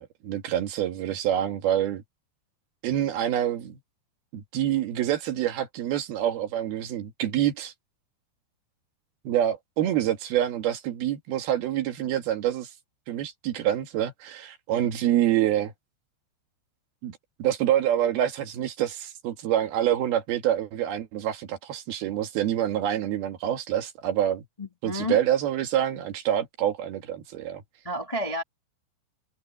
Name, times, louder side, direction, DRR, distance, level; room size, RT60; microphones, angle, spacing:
voice 1, 0.0-2.0 2.8-3.8 4.3-7.7 9.2-12.7 13.1-15.7 17.0-24.4 24.8-27.6, right 11 dB, 65° right, 3.4 m, -26 dB
voice 2, 24.6-25.2 27.8-28.4, left 1 dB, 70° left, 0.3 m, -30 dB
omnidirectional pair, 4.9 m